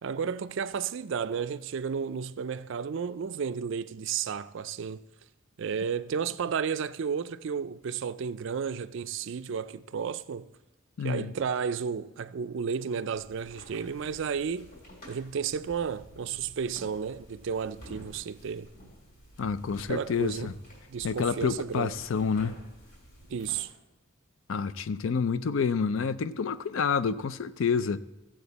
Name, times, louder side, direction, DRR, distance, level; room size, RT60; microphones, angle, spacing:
voice 1, 0.0-5.0 5.6-10.5 11.0-14.7 15.1-18.7 19.9-20.5 20.9-21.9 23.3-23.7, right 6 dB, 60° right, 0.4 m, -32 dB
voice 2, 11.0-11.3 19.4-20.5 21.0-22.6 24.5-28.0, left 5 dB, 65° left, 0.4 m, -28 dB
sound 1, 13.1-23.6, equal, 45° left, 3.6 m, -51 dB
15.5 x 7.7 x 4.1 m
head